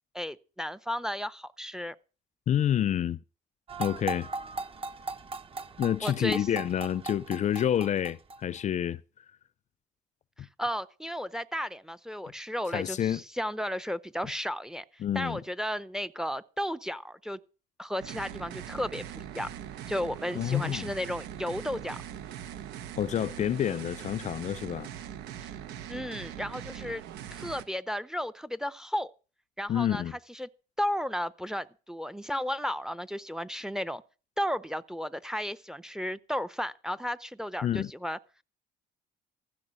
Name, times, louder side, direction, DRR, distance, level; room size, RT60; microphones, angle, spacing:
voice 1, 0.1-2.0 6.0-6.5 10.4-17.4 17.8-19.5 19.9-22.0 25.4-25.5 25.9-27.0 27.3-29.1 29.6-30.0 30.3-30.5 30.8-34.0 34.4-38.2, equal, 5° right, 0.6 m, -34 dB
voice 2, 2.5-3.2 3.8-4.3 5.8-9.0 12.7-13.2 15.0-15.4 20.3-20.9 23.0-24.9 29.7-30.2 37.6-37.9, left 10 dB, 45° left, 0.5 m, -28 dB
sound 1, 3.7-8.6, right 3 dB, 35° right, 0.8 m, -38 dB
sound 2, 18.0-27.6, right 10 dB, 90° right, 1.1 m, -41 dB
15.0 x 6.2 x 8.8 m
cardioid pair, 110°, 17 cm